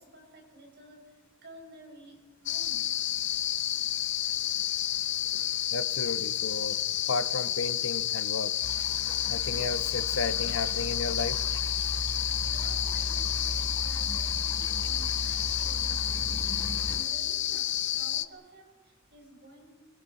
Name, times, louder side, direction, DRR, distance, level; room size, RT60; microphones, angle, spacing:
voice 1, 0.0-3.0 12.4-19.7, right 1 dB, 55° right, 1 dB, 6.1 m, -53 dB
sound 1, 2.5-18.3, left 12 dB, 60° left, 0.8 m, -30 dB
voice 2, 5.7-6.8 7.1-8.6 9.3-11.4, left 3 dB, 85° left, 12 dB, 1.2 m, -33 dB
sound 2, 8.6-17.0, equal, 20° left, 6.1 m, -37 dB
25.5 x 22.0 x 6.0 m, 1.3 s
head